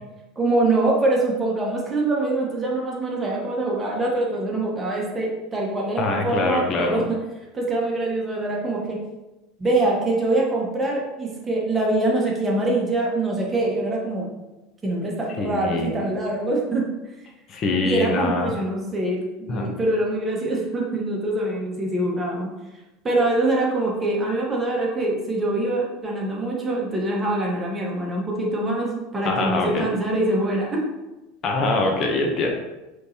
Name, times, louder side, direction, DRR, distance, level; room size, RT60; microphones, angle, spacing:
voice 1, 0.4-7.2 7.5-9.0 9.6-14.3 14.8-16.9 17.8-22.5 23.0-30.8, right 2 dB, 20° right, -2 dB, 1.2 m, -24 dB
voice 2, 6.0-7.0 15.4-16.0 17.5-18.5 19.5-19.7 29.2-29.9 31.4-32.5, left 3 dB, 40° left, 1 dB, 0.7 m, -24 dB
5.1 x 3.2 x 2.8 m, 1.0 s
supercardioid pair, 105°, 0 cm